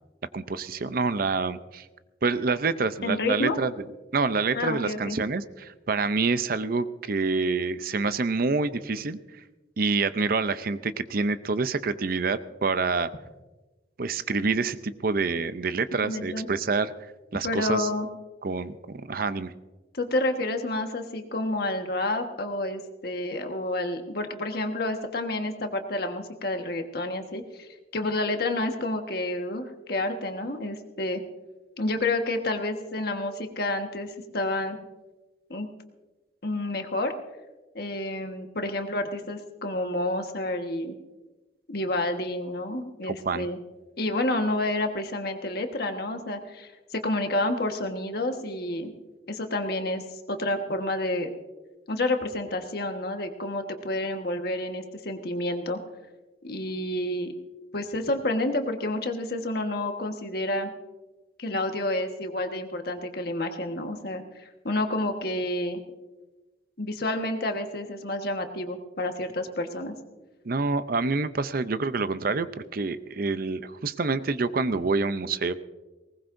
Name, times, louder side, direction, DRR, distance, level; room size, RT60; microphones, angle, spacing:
voice 1, 0.3-1.9 2.2-3.7 4.1-9.2 9.8-13.1 14.0-16.9 17.3-17.9 18.4-19.5 43.1-43.5 70.4-72.5 72.7-75.5, right 4 dB, 50° right, 13 dB, 0.6 m, -27 dB
voice 2, 3.0-3.6 4.5-5.2 16.0-16.5 17.4-18.1 19.9-31.2 31.8-34.8 35.5-35.7 36.4-37.1 37.7-41.0 41.7-43.6 44.0-48.9 49.3-50.0 50.3-51.3 51.9-55.8 56.4-57.3 57.7-60.7 61.4-65.8 66.8-69.9, left 1 dB, 55° left, 5 dB, 1.4 m, -29 dB
20.0 x 19.0 x 2.6 m, 1.1 s
head